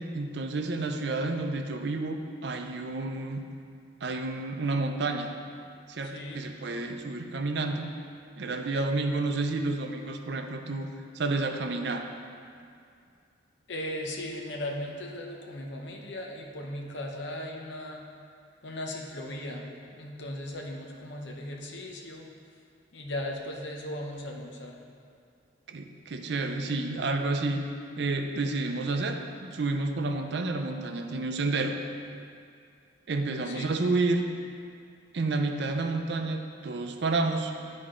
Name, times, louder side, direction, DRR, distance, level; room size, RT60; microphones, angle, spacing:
voice 1, 0.0-3.4 4.0-5.3 5.9-7.9 8.4-10.9 11.1-12.1 25.7-27.6 28.0-31.8 33.1-34.2 35.1-37.5, right 3 dB, 60° right, 5 dB, 0.5 m, -30 dB
voice 2, 6.0-6.4 13.7-18.0 18.6-22.3 22.9-24.8 33.4-33.7, left 1 dB, 65° left, 0 dB, 0.8 m, -37 dB
9.6 x 4.2 x 3.7 m, 2.4 s
head